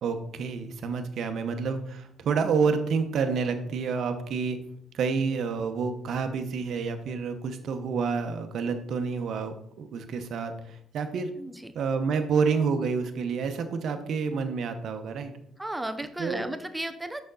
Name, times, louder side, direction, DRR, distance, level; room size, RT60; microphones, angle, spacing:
voice 1, 0.0-4.6 4.9-11.3 11.7-15.3 16.2-16.4, right 5 dB, 70° right, 7 dB, 0.9 m, -29 dB
voice 2, 11.4-11.7 15.6-17.2, right 1 dB, 10° right, 8 dB, 0.7 m, -34 dB
6.4 x 5.9 x 3.9 m, 0.68 s
cardioid pair, 90°, 0 cm